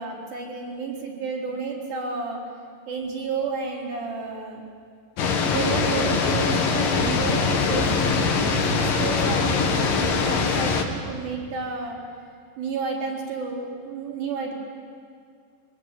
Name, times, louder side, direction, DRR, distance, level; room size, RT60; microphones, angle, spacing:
voice 1, 0.0-2.4 2.9-4.6 5.5-7.9 8.5-12.0 12.6-14.5, right 4 dB, 75° right, -3 dB, 6.2 m, -31 dB
sound 1, 5.2-10.8, left 4 dB, 60° left, 3.3 m, -22 dB
24.5 x 22.0 x 9.1 m, 2.1 s
omnidirectional pair, 4.7 m